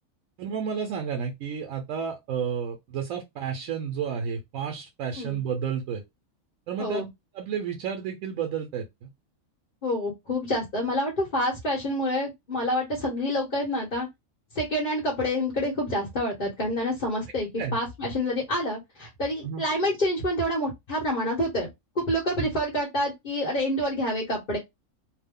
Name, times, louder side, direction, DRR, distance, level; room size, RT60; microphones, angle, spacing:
voice 1, 0.4-6.0 6.7-7.0 7.3-9.1 17.6-17.8 19.4-19.6 22.4-22.5, right 7 dB, 80° right, 1.0 m, -31 dB
voice 2, 9.8-14.1 14.5-21.7 21.9-24.6, equal, 40° left, 1.1 m, -27 dB
2.7 x 2.1 x 3.5 m
omnidirectional pair, 1.4 m